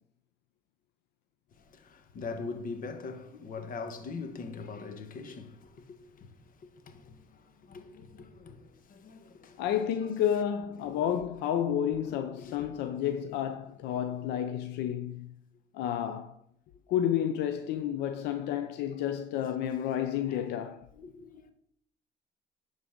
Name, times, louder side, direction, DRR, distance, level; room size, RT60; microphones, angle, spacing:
voice 1, 1.5-9.6 10.8-11.2 12.0-12.9 18.9-19.0 19.9-20.0 20.3-20.5 20.9-21.5, left 4 dB, 55° left, 1.3 m, -43 dB
voice 2, 9.6-15.3 15.7-16.3 16.9-20.9, left 9 dB, 85° left, 0.6 m, -31 dB
11.0 x 4.0 x 5.1 m
cardioid pair, 110°, 17 cm